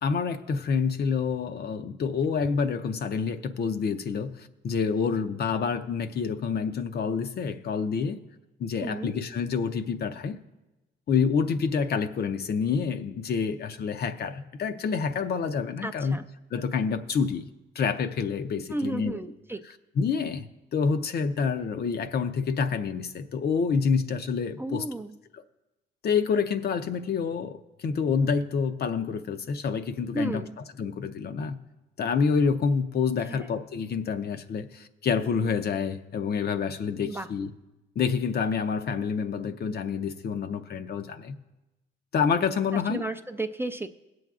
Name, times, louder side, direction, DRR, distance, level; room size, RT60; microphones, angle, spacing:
voice 1, 0.0-8.2 8.6-10.4 11.1-16.2 16.5-17.5 17.7-19.2 20.0-24.9 26.0-30.5 30.8-31.6 32.0-37.5 38.0-41.4 42.1-43.0, left 5 dB, 55° left, 0.6 m, -28 dB
voice 2, 15.8-16.2 18.7-19.6 24.6-25.1 30.1-30.6 33.3-33.5 37.1-37.3 42.7-43.9, right 2 dB, 10° right, 0.4 m, -33 dB
21.0 x 7.7 x 2.4 m
cardioid pair, 90°, 20 cm